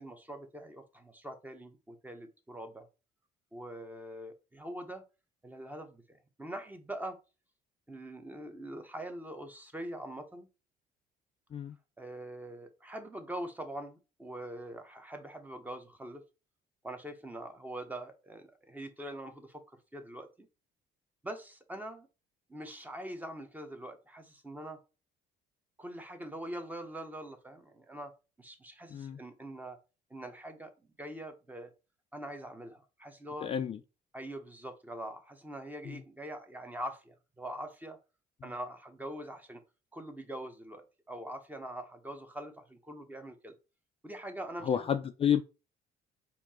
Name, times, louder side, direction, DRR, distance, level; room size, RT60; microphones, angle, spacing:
voice 1, 0.0-2.9 3.5-5.0 5.4-7.2 7.9-10.5 12.0-16.2 16.8-20.5 21.2-22.1 22.5-24.8 25.8-28.1 28.4-29.8 30.1-30.7 31.0-31.7 32.1-33.5 34.1-38.0 38.4-39.6 39.9-40.8 41.1-43.5 44.0-44.9, right 1 dB, 10° right, 1.0 m, -43 dB
voice 2, 33.4-33.8 35.9-36.0 44.6-45.4, left 8 dB, 35° left, 0.4 m, -30 dB
4.4 x 2.7 x 4.3 m
cardioid pair, 110°, 17 cm